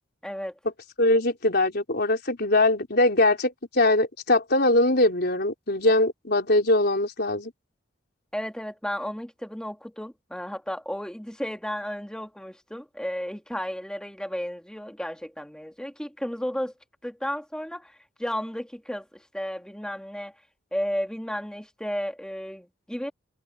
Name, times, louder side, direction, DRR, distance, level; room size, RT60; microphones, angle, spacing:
voice 1, 0.2-0.5 8.3-16.7 17.0-20.3 20.7-23.1, equal, 5° left, 1.5 m, -33 dB
voice 2, 1.0-7.5, left 2 dB, 55° left, 4.2 m, -22 dB
head